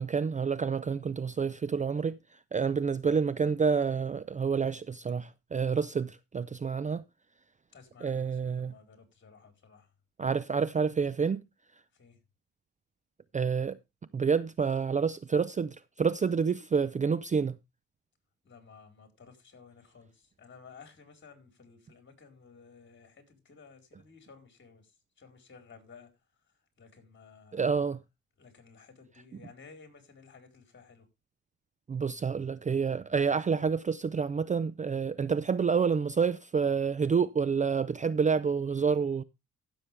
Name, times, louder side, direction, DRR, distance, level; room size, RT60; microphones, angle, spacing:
voice 1, 0.0-2.2 2.5-7.0 8.0-8.7 10.2-11.4 13.3-13.8 14.1-17.6 27.5-28.0 31.9-39.2, right 6 dB, 25° right, 0.5 m, -28 dB
voice 2, 7.7-9.9 11.9-12.2 18.4-24.9 25.2-26.1 26.8-27.7 28.4-31.1, left 5 dB, 40° left, 4.4 m, -55 dB
15.5 x 7.1 x 3.4 m
cardioid pair, 90°, 30 cm